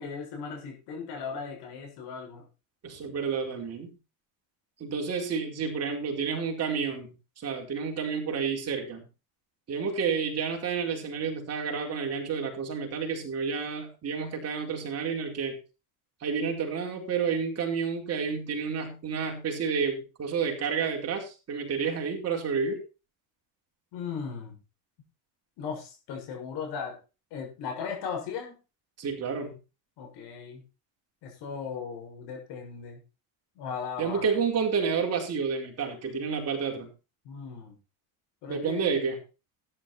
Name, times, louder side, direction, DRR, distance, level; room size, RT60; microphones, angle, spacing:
voice 1, 0.0-2.5 23.9-24.6 25.6-27.0 27.3-28.6 30.0-30.6 31.2-33.0 33.5-34.3 37.2-37.8 38.4-38.9, left 6 dB, 65° left, 2 dB, 6.7 m, -37 dB
voice 2, 2.8-3.9 4.8-9.1 9.7-15.6 16.2-22.8 29.0-29.5 34.0-36.9 38.5-39.2, right 6 dB, 35° right, 1 dB, 4.7 m, -30 dB
13.5 x 10.0 x 4.3 m, 0.31 s
cardioid pair, 145°, 44 cm